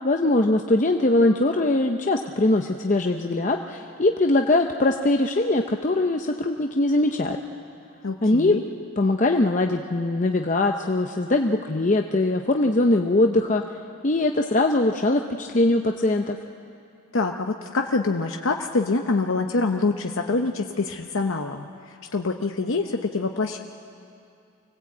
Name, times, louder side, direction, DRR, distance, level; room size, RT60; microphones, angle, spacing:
voice 1, 0.0-7.4 8.2-8.6 9.0-13.6 14.0-16.4, left 2 dB, 35° left, 4 dB, 0.7 m, -21 dB
voice 2, 8.0-8.6 17.1-23.6, left 3 dB, 70° left, 4 dB, 0.8 m, -25 dB
25.0 x 17.5 x 8.5 m, 2.5 s
head